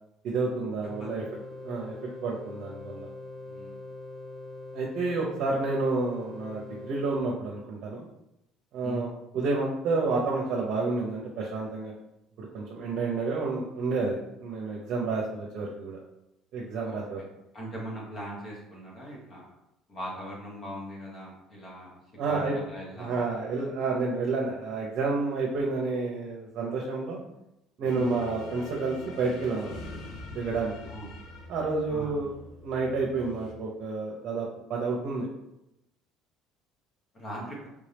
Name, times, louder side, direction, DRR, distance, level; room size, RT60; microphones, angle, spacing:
voice 1, 0.2-1.2 1.6-1.9 2.2-3.1 4.7-8.1 8.7-9.1 9.3-11.9 12.4-16.0 16.5-17.2 22.2-22.5 23.0-27.2 27.8-29.8 30.3-30.8 31.5-32.3 32.6-35.3, right 3 dB, 60° right, -2 dB, 0.7 m, -30 dB
sound 1, 0.8-7.2, left 2 dB, ahead, 0.7 m, -42 dB
voice 2, 1.0-1.3 3.4-3.8 8.8-9.1 16.8-17.0 17.5-19.5 19.9-22.0 22.2-23.4 27.9-28.2 30.9-31.1 31.9-32.1 37.1-37.7, equal, 40° left, -3 dB, 1.2 m, -40 dB
sound 2, 27.8-33.5, left 2 dB, 70° left, 0.6 m, -44 dB
3.4 x 2.7 x 3.4 m, 0.86 s
cardioid pair, 105°, 0 cm